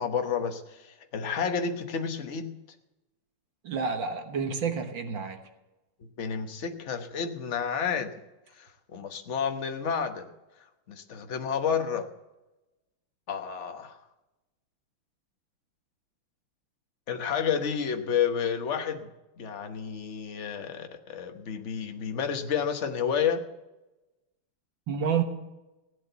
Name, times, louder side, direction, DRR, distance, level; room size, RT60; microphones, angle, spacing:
voice 1, 0.0-2.5 6.2-8.1 8.6-10.3 10.9-12.1 13.3-14.0 17.1-19.1 19.4-23.4, left 7 dB, 40° left, 6 dB, 1.2 m, -30 dB
voice 2, 3.6-5.4 24.9-25.2, right 6 dB, 60° right, 6 dB, 2.0 m, -29 dB
16.5 x 8.8 x 6.9 m, 1.0 s
omnidirectional pair, 2.4 m